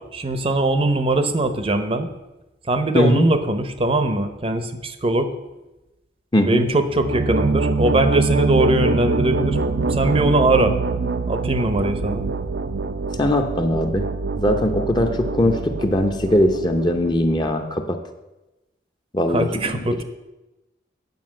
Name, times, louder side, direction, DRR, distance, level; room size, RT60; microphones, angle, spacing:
voice 1, 0.1-2.1 2.7-5.3 6.5-9.6 9.9-10.7 11.3-12.2 19.3-20.0, right 2 dB, 30° right, 9 dB, 0.7 m, -21 dB
voice 2, 2.9-3.3 6.3-6.7 13.2-14.1 14.4-18.0 19.1-19.5 19.9-20.0, left 1 dB, 25° left, 5 dB, 0.7 m, -20 dB
sound 1, 6.9-17.5, right 3 dB, 65° right, 0.5 m, -24 dB
9.6 x 5.2 x 7.5 m, 1.0 s
head